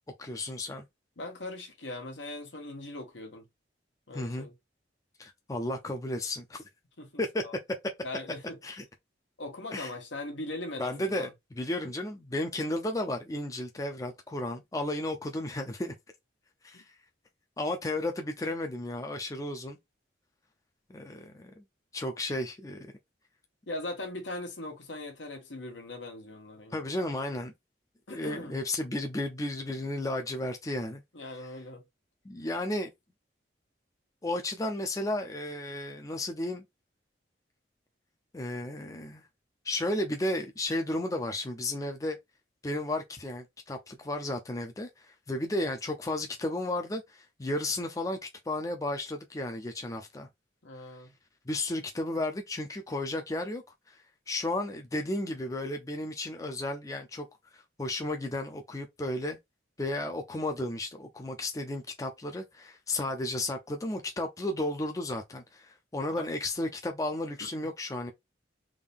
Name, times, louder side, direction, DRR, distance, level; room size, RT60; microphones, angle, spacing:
voice 1, 0.2-0.8 4.1-4.5 5.2-6.6 7.2-7.4 8.6-8.8 9.7-9.9 10.8-11.3 11.6-15.9 16.6-16.8 17.6-19.8 20.9-21.6 21.9-22.9 26.7-27.5 28.1-31.0 31.4-31.5 32.2-32.9 34.2-36.6 38.3-39.2 39.6-42.2 42.6-48.2 48.5-50.3 51.5-53.6 53.9-57.3 57.5-59.4 59.8-68.1, left 1 dB, 20° left, 0.5 m, -33 dB
voice 2, 1.2-3.4 4.1-4.5 7.0-7.1 7.4-7.5 8.0-8.6 9.4-11.3 16.7-16.8 23.7-26.9 28.1-28.5 31.1-31.8 50.6-51.1 66.1-66.3 67.4-67.7, left 2 dB, 85° left, 1.3 m, -40 dB
3.6 x 2.6 x 3.5 m
head